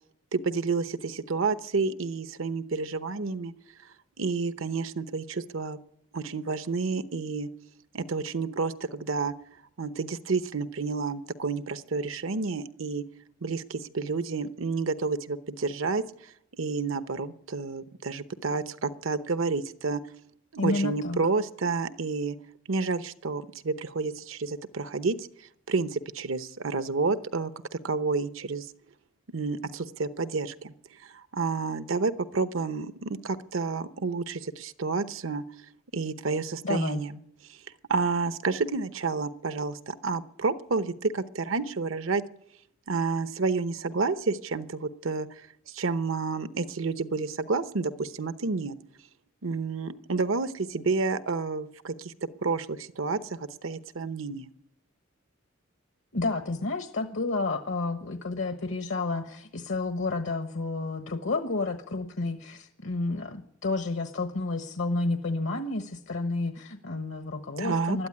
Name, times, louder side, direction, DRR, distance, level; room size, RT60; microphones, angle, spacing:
voice 1, 0.3-3.5 4.2-5.8 6.1-7.5 7.9-9.3 9.8-13.0 13.4-20.0 20.5-22.4 22.7-25.3 25.7-27.5 27.8-28.7 29.3-30.7 31.0-35.4 35.9-37.2 37.5-37.6 37.9-42.2 42.9-48.8 49.4-52.1 52.4-54.5 67.6-68.0, right 4 dB, 80° right, 12 dB, 0.9 m, -30 dB
voice 2, 20.6-21.2 36.6-37.0 56.1-68.1, left 3 dB, 70° left, 7 dB, 1.2 m, -30 dB
21.0 x 13.0 x 9.8 m, 0.78 s
head